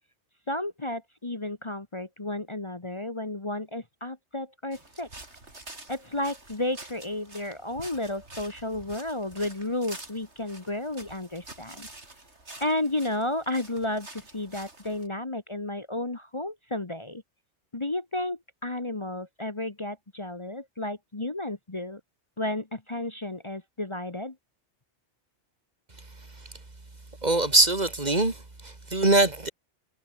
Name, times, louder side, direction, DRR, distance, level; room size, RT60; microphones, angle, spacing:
voice 1, 0.5-5.1 5.9-11.9 12.6-17.2 17.7-22.0 22.4-24.3, left 1 dB, 25° left, 1.4 m, -32 dB
Footsteps Dry Leaves B, 4.7-15.1, right 2 dB, 65° right, 5.1 m, -47 dB
voice 2, 27.2-29.5, right 2 dB, 35° right, 2.7 m, -23 dB
omnidirectional pair, 1.2 m